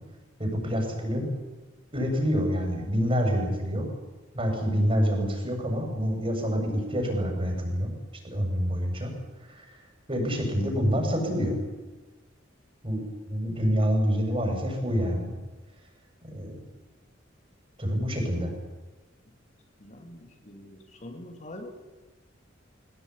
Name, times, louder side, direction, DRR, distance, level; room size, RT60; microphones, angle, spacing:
voice 1, 0.4-1.3 1.9-3.9 4.3-7.9 8.2-9.1 9.5-9.7 10.1-11.6 12.8-15.3 16.3-16.5 17.8-18.5, equal, 30° right, 2 dB, 7.5 m, -27 dB
voice 2, 19.8-21.7, left 1 dB, 40° left, 4 dB, 2.9 m, -44 dB
22.0 x 18.5 x 10.0 m, 1.2 s
head